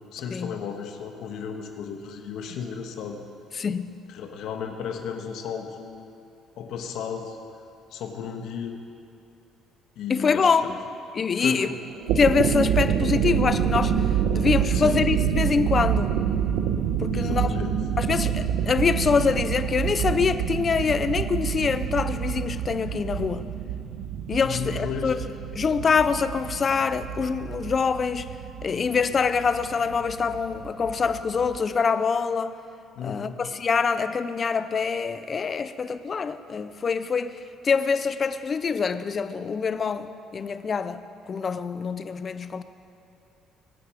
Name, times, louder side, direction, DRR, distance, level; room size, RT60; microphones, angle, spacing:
voice 1, 0.1-3.2 4.1-6.2 6.6-7.4 7.9-8.8 9.9-10.8 11.4-11.8 14.7-15.0 17.1-17.8 24.4-25.2 32.9-33.4, left 7 dB, 60° left, 4 dB, 1.5 m, -34 dB
voice 2, 3.6-4.0 10.1-10.7 11.1-11.7 12.2-13.9 14.3-16.1 17.0-17.5 18.0-23.5 24.3-25.2 25.5-28.3 28.6-32.5 33.0-37.4 37.6-41.0 41.3-42.6, left 5 dB, 25° left, 12 dB, 0.5 m, -25 dB
sound 1, 11.9-31.6, right 8 dB, 80° right, 0.9 m, -27 dB
23.0 x 9.2 x 5.1 m, 2.7 s
cardioid pair, 175°, 0 cm